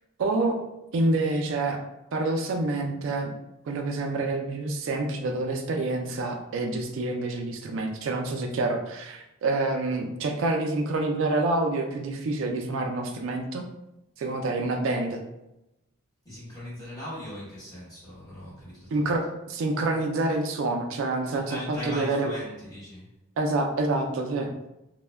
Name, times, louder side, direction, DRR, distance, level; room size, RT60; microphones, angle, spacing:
voice 1, 0.2-0.6 0.9-1.8 2.1-3.3 3.7-13.7 14.2-15.2 18.9-22.3 23.4-24.7, right 2 dB, 65° right, 4 dB, 0.3 m, -27 dB
voice 2, 16.2-19.1 21.3-23.1, equal, 15° left, -8 dB, 1.0 m, -39 dB
2.1 x 2.1 x 3.3 m, 0.90 s
head